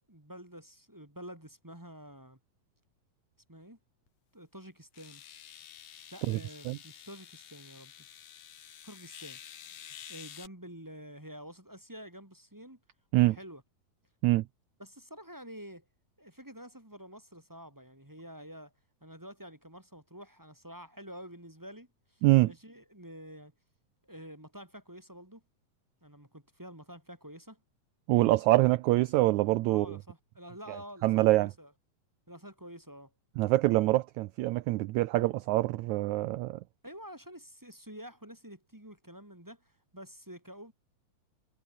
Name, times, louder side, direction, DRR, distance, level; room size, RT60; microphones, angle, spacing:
voice 1, 0.1-2.4 3.5-3.8 4.3-5.2 6.1-8.1 8.8-9.4 10.1-12.8 13.2-13.6 14.8-15.8 16.2-18.7 19.0-23.5 24.0-25.4 26.0-27.6 29.7-31.7 32.3-33.1 36.8-40.7, equal, 5° right, 1.9 m, -48 dB
sound 1, 4.1-4.2 4.9-10.5, left 9 dB, 65° left, 3.5 m, -50 dB
voice 2, 22.2-22.5 28.1-29.9 30.7-30.8 31.0-31.5 33.4-36.6, right 18 dB, 80° right, 1.7 m, -25 dB
omnidirectional pair, 3.9 m